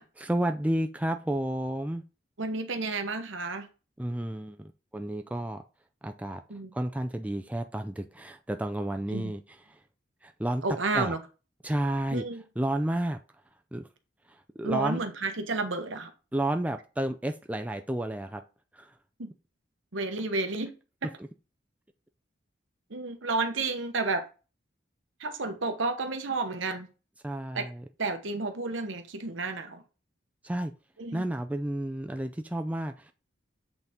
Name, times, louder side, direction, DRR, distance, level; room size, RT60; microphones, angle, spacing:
voice 1, 0.2-2.0 4.0-5.6 6.0-6.4 6.7-9.8 10.2-10.6 10.9-11.1 11.6-12.2 12.6-13.2 13.7-13.9 14.3-15.0 16.3-18.4 18.7-18.9 27.2-27.8 30.4-30.7 31.1-33.1, right 1 dB, 5° right, 0.4 m, -31 dB
voice 2, 2.4-3.7 6.5-6.7 9.1-9.3 10.6-11.2 12.1-12.4 14.6-16.1 19.2-19.3 19.9-20.7 22.9-24.3 25.2-26.9 27.5-27.7 28.0-29.8 31.0-31.3, right 3 dB, 75° right, 1.0 m, -31 dB
8.1 x 4.0 x 3.6 m
head